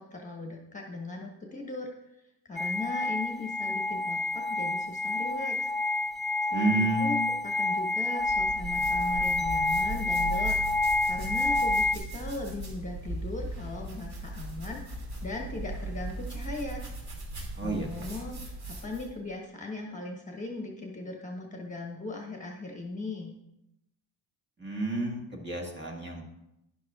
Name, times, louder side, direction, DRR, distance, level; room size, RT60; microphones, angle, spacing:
voice 1, 0.0-1.9 2.4-5.7 6.4-7.2 7.4-10.6 11.0-16.8 17.6-23.3, left 2 dB, 15° left, 0 dB, 1.2 m, -38 dB
sound 1, 2.6-12.0, left 2 dB, ahead, 0.4 m, -28 dB
voice 2, 6.5-7.2 17.6-17.9 24.6-26.3, right 2 dB, 25° right, -1 dB, 1.6 m, -30 dB
sound 2, 8.2-19.2, right 1 dB, 55° right, 2.6 m, -38 dB
12.0 x 10.5 x 2.4 m, 0.86 s
wide cardioid pair, 170°, 46 cm